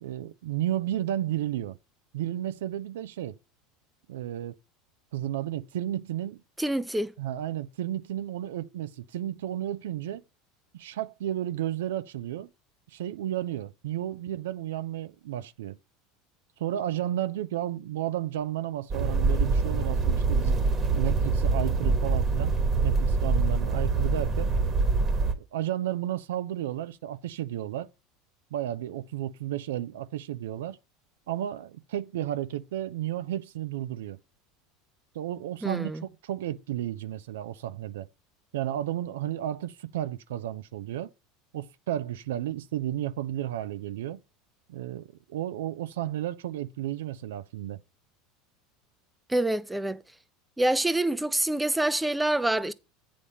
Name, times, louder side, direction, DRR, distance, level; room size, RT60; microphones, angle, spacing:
voice 1, 0.0-1.8 2.1-3.4 4.1-4.6 5.1-6.4 7.2-10.2 10.7-12.5 12.9-15.8 16.6-22.5 22.8-24.5 25.4-27.9 28.5-30.8 31.3-34.2 35.1-35.9 36.2-38.1 38.5-41.1 41.5-44.2 44.7-47.8, right 12 dB, 80° right, 0.5 m, -32 dB
voice 2, 6.6-7.1 35.6-36.0 49.3-50.0 50.6-52.7, right 1 dB, 5° right, 0.7 m, -26 dB
sound 1, 18.9-25.3, right 3 dB, 35° right, 1.4 m, -25 dB
8.4 x 5.2 x 5.4 m
hypercardioid pair, 90°, 0 cm